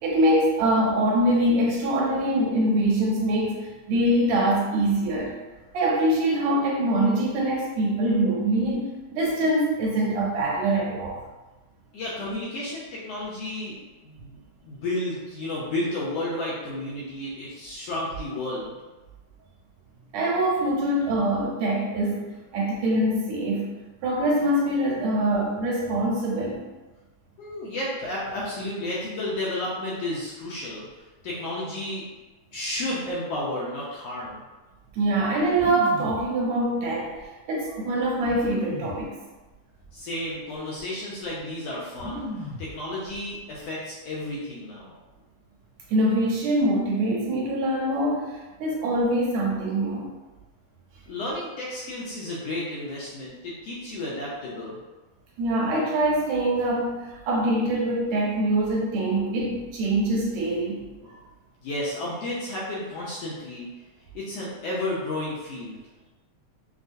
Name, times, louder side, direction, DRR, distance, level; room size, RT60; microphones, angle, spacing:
voice 1, 0.0-5.4 5.7-11.2 20.1-23.7 24.0-26.7 34.9-37.1 37.5-39.1 45.9-50.1 55.4-61.2, right 1 dB, 75° right, -3 dB, 1.9 m, -24 dB
voice 2, 11.9-18.7 25.0-25.1 27.4-30.9 31.2-32.0 32.5-34.4 39.9-44.9 51.1-54.8 61.6-63.7 64.1-65.8, left 1 dB, 75° left, -6 dB, 1.6 m, -32 dB
sound 1, 35.6-36.3 37.1-37.2 38.2-39.0 39.8-40.0 40.3-40.8 42.0-42.7 43.0-43.6, left 1 dB, 45° right, 0.9 m, -35 dB
6.0 x 2.1 x 2.6 m, 1.1 s
omnidirectional pair, 3.4 m